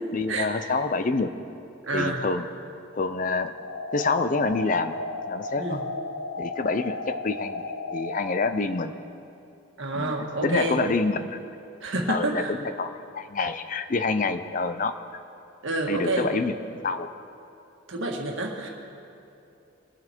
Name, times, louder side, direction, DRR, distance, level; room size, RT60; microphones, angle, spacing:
voice 1, 0.1-1.3 1.9-2.5 2.9-3.5 3.9-4.9 5.3-5.8 6.4-9.0 9.9-10.1 10.4-11.4 12.1-15.2 15.9-16.5 16.8-17.1, left 3 dB, 40° left, 10 dB, 0.5 m, -27 dB
voice 2, 1.8-2.2 5.5-5.9 9.8-10.8 11.8-12.5 15.6-16.3 17.9-18.7, right 2 dB, 65° right, 1 dB, 1.7 m, -28 dB
sound 1, 3.6-8.6, left 3 dB, 80° left, 0.6 m, -34 dB
22.5 x 7.7 x 4.4 m, 2.7 s
head